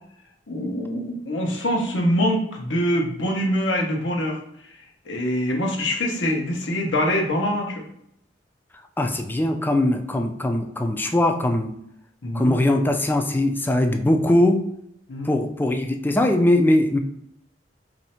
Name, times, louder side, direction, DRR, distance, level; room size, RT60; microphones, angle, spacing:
voice 1, 0.5-4.4 5.1-7.9 12.2-12.5 15.1-15.3, equal, 85° left, 1 dB, 0.9 m, -24 dB
voice 2, 9.0-11.7 12.3-14.7 15.3-17.0, left 1 dB, 10° left, 5 dB, 0.3 m, -21 dB
3.2 x 2.7 x 4.3 m, 0.73 s
head